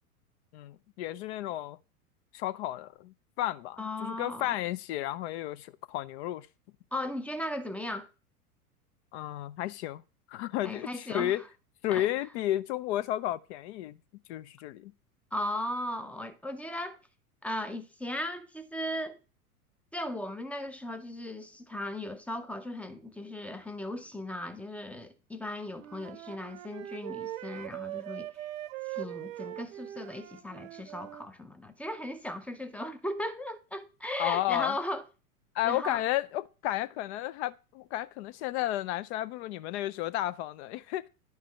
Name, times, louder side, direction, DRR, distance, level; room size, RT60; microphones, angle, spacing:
voice 1, 0.5-1.8 2.3-6.5 9.1-10.0 10.3-11.4 11.8-14.0 14.3-14.9 34.2-34.7 35.5-41.0, left 14 dB, 45° left, 0.6 m, -32 dB
voice 2, 3.8-4.5 6.9-8.1 10.6-11.4 11.9-12.1 15.3-17.0 17.4-19.2 19.9-28.3 28.9-35.0 35.6-36.0, left 1 dB, 5° left, 0.6 m, -37 dB
Wind instrument woodwind instrument, 25.7-31.3, right 15 dB, 60° right, 0.9 m, -41 dB
10.5 x 4.8 x 5.6 m
hypercardioid pair, 95°, 45 cm